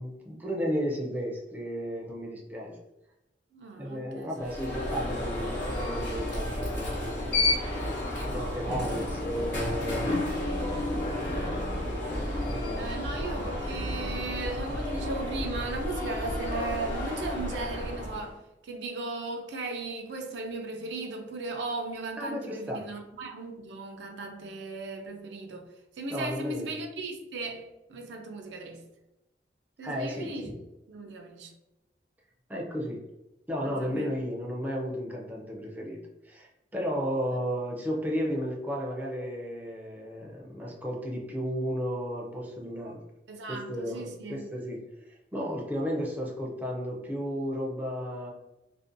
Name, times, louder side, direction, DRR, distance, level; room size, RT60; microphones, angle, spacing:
voice 1, 0.0-2.8 3.8-7.6 8.2-10.2 12.1-12.9 22.2-22.9 26.1-26.7 29.8-30.6 32.5-33.1 33.5-36.0 36.2-43.0 43.5-48.3, equal, 10° right, 0.4 m, -33 dB
voice 2, 3.5-4.3 8.7-9.0 12.8-25.7 26.0-28.8 29.8-30.5 30.9-31.5 33.6-34.1 43.3-44.4, right 3 dB, 75° right, 0.4 m, -37 dB
Alarm, 4.4-18.3, left 1 dB, 85° left, 0.8 m, -31 dB
2.5 x 2.1 x 2.5 m
head